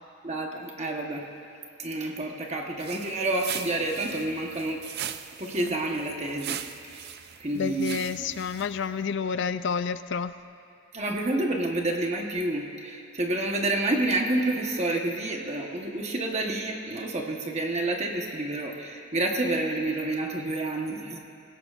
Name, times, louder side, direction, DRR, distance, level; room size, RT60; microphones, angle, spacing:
voice 1, 0.2-1.3 1.8-4.8 5.4-6.6 6.8-7.1 7.4-8.0 10.9-21.2, right 2 dB, 30° right, 1 dB, 1.1 m, -29 dB
sound 1, 2.8-9.0, right 10 dB, 50° right, 0.4 m, -40 dB
voice 2, 7.5-10.3, left 6 dB, 55° left, 12 dB, 0.4 m, -29 dB
27.5 x 17.0 x 2.5 m, 2.6 s
head